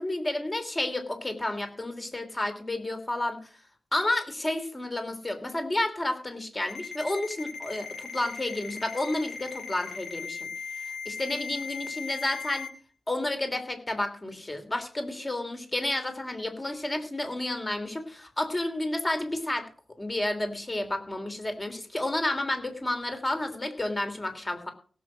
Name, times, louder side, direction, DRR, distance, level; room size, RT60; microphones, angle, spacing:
voice 1, 0.0-3.4 3.9-10.5 10.8-12.7 13.1-19.7 20.0-24.7, left 1 dB, 25° left, 7 dB, 3.0 m, -31 dB
Ringtone, 6.7-12.7, left 5 dB, 70° left, 5.3 m, -38 dB
17.0 x 7.6 x 6.3 m, 0.41 s
wide cardioid pair, 100°, 0 cm